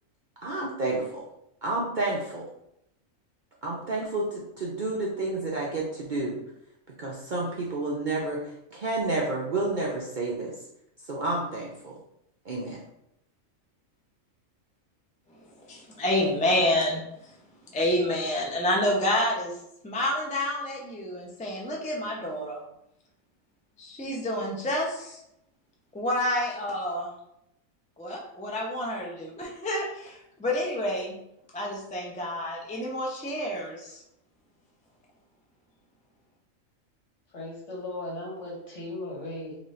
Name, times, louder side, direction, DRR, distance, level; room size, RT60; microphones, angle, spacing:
voice 1, 0.4-1.3 1.6-2.4 3.6-6.4 7.0-10.6 11.0-12.0 12.4-12.8, right 2 dB, 50° right, -4 dB, 0.6 m, -30 dB
voice 2, 15.3-17.4 17.6-19.6 19.8-22.6 23.8-25.2 25.9-27.1 28.0-31.2 31.5-34.0, left 1 dB, 10° left, -2 dB, 0.3 m, -29 dB
voice 3, 37.3-39.6, left 2 dB, 60° left, -3 dB, 1.5 m, -37 dB
4.0 x 3.0 x 3.1 m, 0.80 s
omnidirectional pair, 1.4 m